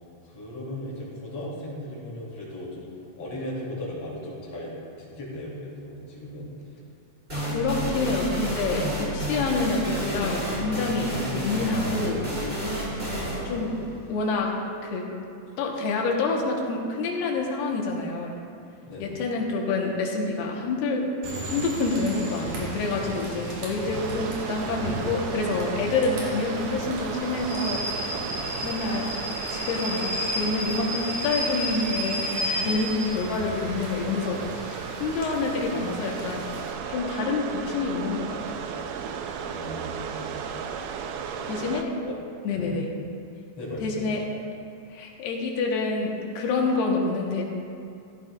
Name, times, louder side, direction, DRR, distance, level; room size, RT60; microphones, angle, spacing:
voice 1, 0.2-4.7 5.0-6.5 13.0-13.8 18.9-19.2 28.4-28.6 39.4-40.4 41.1-41.7 42.0-42.1 42.4-42.8 43.6-44.3, left 1 dB, 40° left, -6 dB, 3.7 m, -37 dB
voice 2, 7.3-12.3 12.9-13.0 13.5-13.8 14.1-14.5 14.8-15.0 15.6-18.3 19.0-21.0 21.4-27.8 28.6-29.1 29.5-34.4 34.7-36.5 36.9-38.7 41.5-42.0 42.4-42.9 43.8-44.2 44.9-47.4, left 3 dB, 80° left, -1 dB, 3.1 m, -27 dB
sound 1, 7.3-14.8, equal, 15° right, 2.7 m, -30 dB
Rain / Train, 21.2-36.7, right 1 dB, 50° right, 3.1 m, -33 dB
sound 2, 23.9-41.8, right 7 dB, 85° right, 2.2 m, -36 dB
15.0 x 13.0 x 2.5 m, 2.5 s
omnidirectional pair, 4.7 m